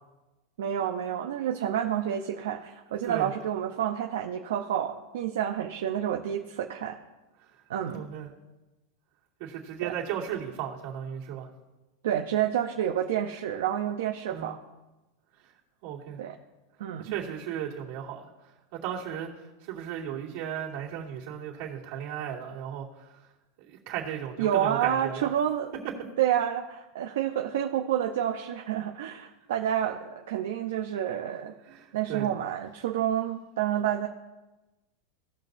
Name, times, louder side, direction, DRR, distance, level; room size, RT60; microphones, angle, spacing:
voice 1, 0.6-7.0 7.7-8.0 9.8-9.9 12.0-14.6 16.2-16.3 16.8-17.1 24.4-25.7 26.2-31.5 31.9-34.1, right 10 dB, 80° right, 4 dB, 0.7 m, -29 dB
voice 2, 7.9-8.3 9.4-11.5 14.3-14.5 15.4-15.5 15.8-16.2 17.0-18.3 18.7-23.3 23.7-25.3 31.6-32.3, right 9 dB, 60° right, -4 dB, 2.7 m, -36 dB
18.0 x 6.1 x 2.7 m, 1.1 s
supercardioid pair, 125°, 0 cm